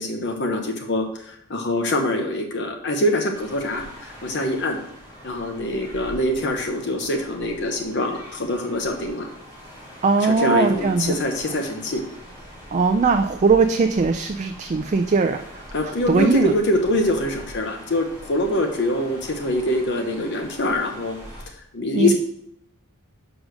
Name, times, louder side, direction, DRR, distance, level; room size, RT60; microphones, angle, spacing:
voice 1, 0.0-4.8 5.2-9.3 10.2-12.0 15.7-21.2 21.5-22.1, left 1 dB, 50° left, 4 dB, 0.9 m, -24 dB
sound 1, 3.3-21.5, equal, 20° left, 3.5 m, -42 dB
voice 2, 10.0-11.2 12.7-16.5 21.9-22.1, right 4 dB, 35° right, 6 dB, 0.3 m, -20 dB
6.2 x 5.0 x 6.3 m, 0.75 s
head